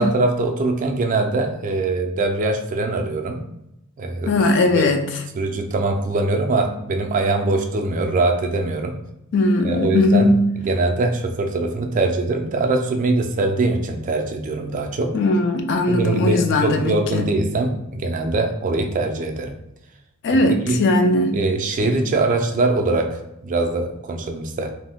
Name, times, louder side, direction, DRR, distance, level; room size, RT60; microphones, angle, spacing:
voice 1, 0.0-3.4 4.0-4.4 4.7-4.9 5.3-9.0 9.6-10.3 10.6-15.1 15.9-19.5 20.3-20.8 21.3-24.7, right 2 dB, 35° right, 0.3 m, -22 dB
voice 2, 4.3-5.1 9.3-10.4 15.1-17.3 20.2-21.4, left 2 dB, 55° left, 0.3 m, -18 dB
2.5 x 2.1 x 3.5 m
head